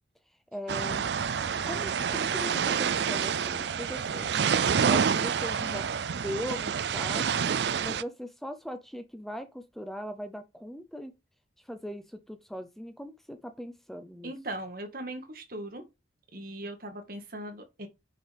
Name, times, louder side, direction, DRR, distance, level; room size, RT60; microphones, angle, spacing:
voice 1, 0.5-1.1 1.6-4.4 4.8-5.9 6.1-7.3 7.8-11.1 11.6-14.3, equal, ahead, 0.6 m, -39 dB
sound 1, 0.7-8.0, right 7 dB, 70° right, 0.4 m, -28 dB
voice 2, 14.2-15.8 16.3-17.9, right 1 dB, 55° right, 1.7 m, -39 dB
9.3 x 5.4 x 3.5 m
head